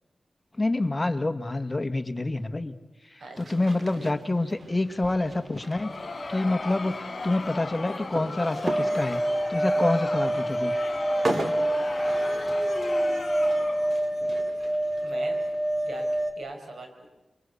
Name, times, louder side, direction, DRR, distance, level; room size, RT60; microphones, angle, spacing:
voice 1, 0.6-2.7 3.1-9.2 9.5-10.7, left 2 dB, 25° left, 8 dB, 1.4 m, -27 dB
voice 2, 3.2-3.7 15.0-15.4 15.8-16.1 16.4-17.1, right 3 dB, 80° right, 5 dB, 5.4 m, -41 dB
sound 1, 3.4-16.3, right 2 dB, 50° right, 2.6 m, -39 dB
Crowd, 5.5-14.0, left 3 dB, 50° left, 2.8 m, -36 dB
sound 2, 8.6-16.3, right 1 dB, 35° right, 4.0 m, -27 dB
29.5 x 24.0 x 8.2 m, 1.1 s
wide cardioid pair, 85°, 0 cm